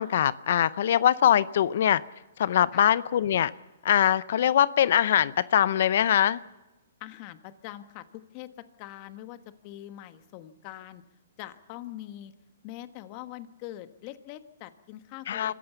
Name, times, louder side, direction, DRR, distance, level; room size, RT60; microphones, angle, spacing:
voice 1, 0.0-2.0 2.4-3.5 3.8-6.4 15.3-15.5, left 10 dB, 60° left, 18 dB, 0.6 m, -22 dB
voice 2, 7.0-11.0 11.4-12.3 12.6-15.5, left 14 dB, 40° left, 10 dB, 1.4 m, -43 dB
26.0 x 14.5 x 7.0 m, 1.1 s
hypercardioid pair, 140°, 0 cm